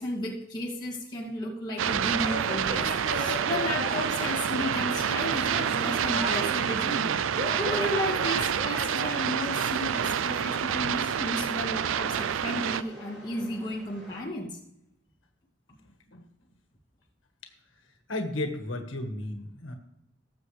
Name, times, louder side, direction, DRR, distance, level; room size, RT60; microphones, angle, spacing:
voice 1, 0.0-14.6, left 1 dB, 20° left, -4 dB, 2.3 m, -34 dB
sound 1, 1.8-12.8, right 8 dB, 90° right, 0.4 m, -28 dB
Male speech man speaking / Yell / Laughter, 2.1-4.3 5.0-6.7 7.3-9.2, equal, 50° right, 2.2 m, -36 dB
sound 2, 3.4-14.2, left 1 dB, ahead, 5.2 m, -51 dB
voice 2, 18.1-19.7, left 1 dB, 85° left, 3 dB, 1.6 m, -34 dB
18.5 x 7.2 x 3.3 m, 0.82 s
head